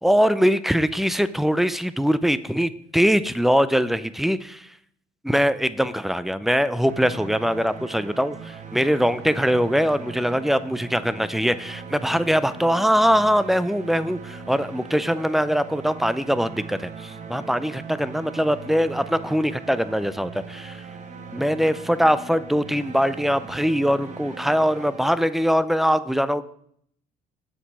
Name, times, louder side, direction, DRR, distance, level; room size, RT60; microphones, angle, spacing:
voice 1, 0.0-4.7 5.2-20.8 21.3-26.4, equal, ahead, 15 dB, 0.4 m, -22 dB
sound 1, 6.8-25.7, right 5 dB, 45° right, 1.1 m, -40 dB
7.3 x 7.1 x 4.7 m, 0.67 s
cardioid pair, 110°, 17 cm